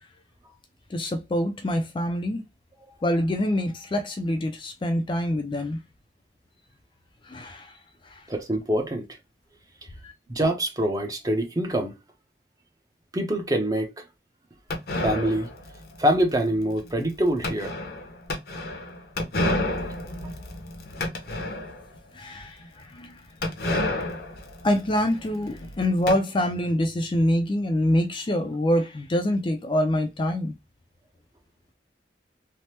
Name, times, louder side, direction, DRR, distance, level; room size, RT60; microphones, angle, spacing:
voice 1, 0.9-2.4 3.0-5.8 7.3-7.7 8.1-8.2 10.0-10.1 22.1-23.2 24.6-30.5, left 1 dB, 30° left, 0.4 m, -25 dB
voice 2, 8.3-9.1 10.3-12.0 13.1-14.0 15.0-15.5 16.0-17.8 20.2-20.3, right 1 dB, 20° right, 0.6 m, -25 dB
sound 1, 14.7-22.0 22.4-22.5 22.6-22.7 23.4-26.2, left 1 dB, 60° left, 0.7 m, -31 dB
3.2 x 2.0 x 2.8 m
head